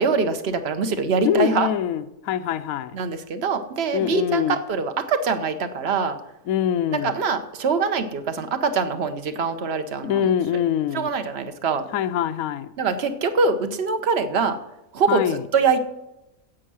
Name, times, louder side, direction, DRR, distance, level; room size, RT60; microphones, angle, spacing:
voice 1, 0.0-1.7 2.9-6.2 6.9-10.3 10.9-11.8 12.8-14.6 14.9-15.8, right 5 dB, 45° right, 9 dB, 1.1 m, -23 dB
voice 2, 1.2-3.0 3.9-4.6 6.5-7.2 10.0-11.1 11.9-12.7 15.1-15.4, left 10 dB, 65° left, 9 dB, 1.0 m, -24 dB
11.0 x 8.5 x 6.2 m, 0.92 s
omnidirectional pair, 1.7 m